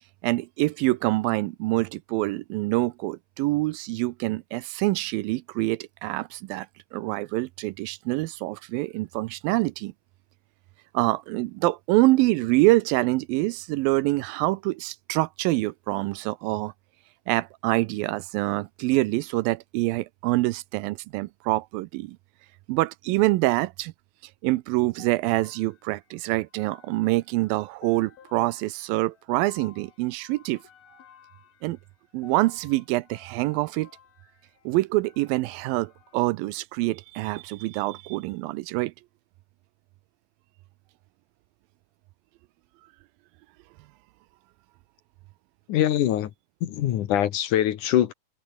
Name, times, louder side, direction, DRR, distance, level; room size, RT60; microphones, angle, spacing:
voice 1, 0.2-6.7 6.9-9.9 10.9-16.7 17.3-22.2 22.7-23.9 24.4-30.6 31.6-31.8 32.1-33.9 34.7-38.9, right 19 dB, 80° right, 2.3 m, -25 dB
sound 1, 25.0-36.3, left 8 dB, 85° left, 4.6 m, -55 dB
voice 2, 45.7-46.3 46.6-48.1, left 11 dB, 65° left, 2.5 m, -23 dB
omnidirectional pair, 4.2 m